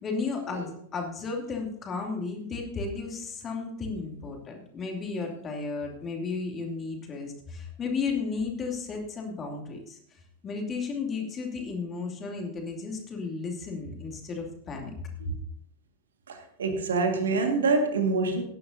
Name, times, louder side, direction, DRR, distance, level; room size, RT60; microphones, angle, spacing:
voice 1, 0.0-10.0 10.4-14.9, left 4 dB, 25° left, 1 dB, 2.7 m, -34 dB
voice 2, 16.3-18.4, right 3 dB, 65° right, 5 dB, 1.9 m, -26 dB
17.0 x 10.5 x 2.7 m, 0.67 s
figure-of-eight pair, 90°, 0 cm